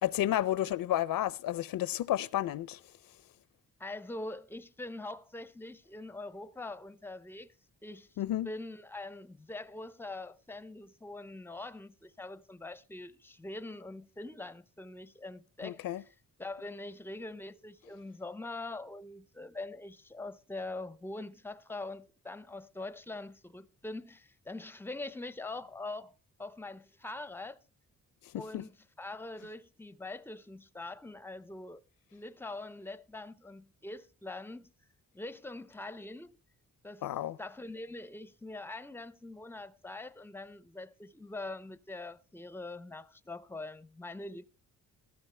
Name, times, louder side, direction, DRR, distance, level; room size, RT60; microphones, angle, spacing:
voice 1, 0.0-2.8 8.2-8.5 15.6-16.0 28.5-28.6 37.0-37.4, left 13 dB, 80° left, 0.5 m, -31 dB
voice 2, 3.8-7.5 7.8-8.1 8.4-27.6 28.4-31.8 32.1-34.7 35.1-36.4 36.8-37.1 37.4-44.5, left 2 dB, 5° left, 0.5 m, -43 dB
15.0 x 13.0 x 3.3 m
cardioid pair, 110°, 34 cm